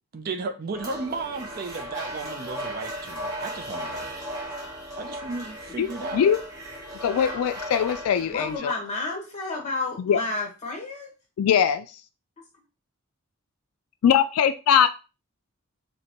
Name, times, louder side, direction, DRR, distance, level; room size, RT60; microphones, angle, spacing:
voice 1, 0.1-4.1 5.0-6.2, right 4 dB, 40° right, 0.4 m, -34 dB
sound 1, 0.7-8.6, equal, 15° right, 1.0 m, -36 dB
voice 2, 5.8-6.4 7.0-8.7 10.0-10.2 11.4-11.9 14.0-14.9, left 8 dB, 75° left, 0.3 m, -21 dB
voice 3, 8.3-11.1, left 3 dB, 30° left, 1.2 m, -31 dB
5.1 x 2.2 x 2.9 m
head